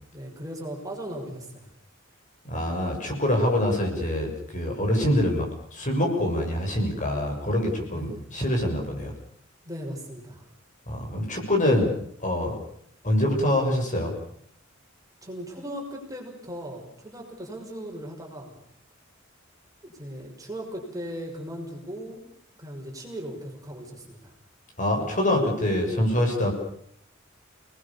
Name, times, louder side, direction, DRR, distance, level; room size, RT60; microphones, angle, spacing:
voice 1, 0.1-1.7 7.9-8.2 9.6-10.4 15.2-18.5 19.8-22.2 22.6-24.3, equal, 15° right, 1 dB, 6.1 m, -38 dB
voice 2, 2.4-9.1 10.9-11.9 12.2-12.6 13.0-14.1 24.8-26.5, left 1 dB, 40° left, 1 dB, 7.0 m, -25 dB
30.0 x 20.5 x 7.2 m, 0.67 s
head